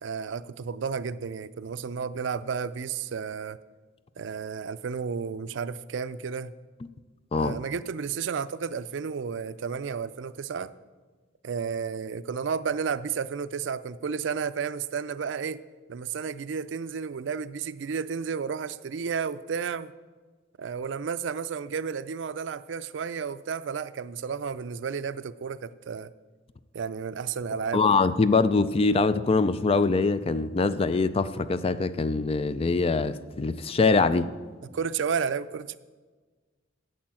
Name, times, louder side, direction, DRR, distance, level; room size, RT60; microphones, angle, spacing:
voice 1, 0.0-3.6 4.2-6.5 7.4-10.7 11.4-15.6 15.9-19.9 20.6-26.1 26.7-28.0 34.7-35.8, right 6 dB, 75° right, 15 dB, 0.4 m, -32 dB
voice 2, 27.7-34.3, left 4 dB, 30° left, 14 dB, 0.4 m, -23 dB
8.7 x 8.2 x 7.5 m, 1.4 s
head